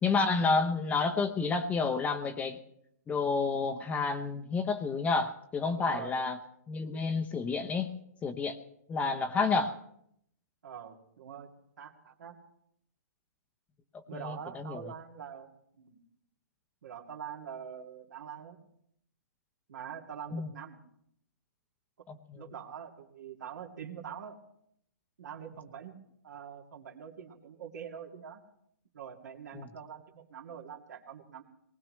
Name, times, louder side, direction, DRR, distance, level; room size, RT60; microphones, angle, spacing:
voice 1, 0.0-2.6 3.1-6.4 6.7-7.9 8.2-8.6 8.9-9.7 14.1-14.9 20.3-20.5 22.1-22.4 29.5-29.7, left 4 dB, 15° left, 7 dB, 0.8 m, -30 dB
voice 2, 5.7-6.2 10.6-11.5 11.8-12.4 14.1-16.0 16.8-18.6 19.7-20.8 22.0-22.1 22.3-24.4 25.2-28.4 28.9-31.4, right 8 dB, 70° right, 1 dB, 2.4 m, -44 dB
19.5 x 19.0 x 3.2 m, 0.72 s
hypercardioid pair, 135°, 10 cm